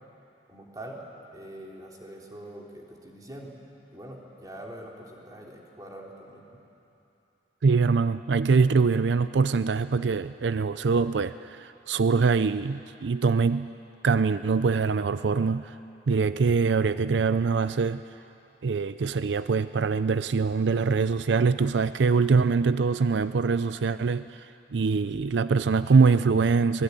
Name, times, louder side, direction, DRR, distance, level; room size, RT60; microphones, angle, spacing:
voice 1, 0.5-1.0 1.3-3.5 3.9-6.4, right 1 dB, 20° right, -2 dB, 3.5 m, -43 dB
voice 2, 7.6-13.7 14.0-15.7 16.1-18.0 18.6-24.5 24.7-26.8, right 4 dB, 80° right, 13 dB, 0.5 m, -23 dB
25.5 x 19.0 x 9.7 m, 2.9 s
head